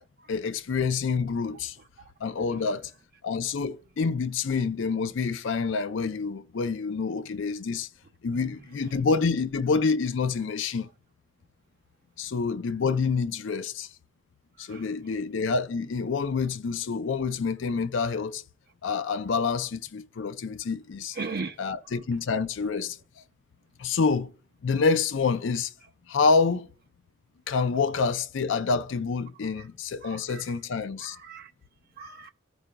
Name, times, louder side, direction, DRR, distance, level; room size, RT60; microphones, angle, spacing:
voice 1, 0.3-1.8 2.2-2.9 3.2-7.9 8.2-10.9 12.2-13.9 14.6-18.4 18.8-21.2 21.6-23.0 23.8-24.3 24.6-25.7 26.1-26.7 27.5-31.2, left 4 dB, 65° left, 0.4 m, -27 dB
voice 2, 21.1-21.6 29.6-29.7 30.0-30.5 31.0-31.5 32.0-32.3, right 4 dB, 50° right, 0.5 m, -38 dB
15.0 x 5.0 x 2.2 m
head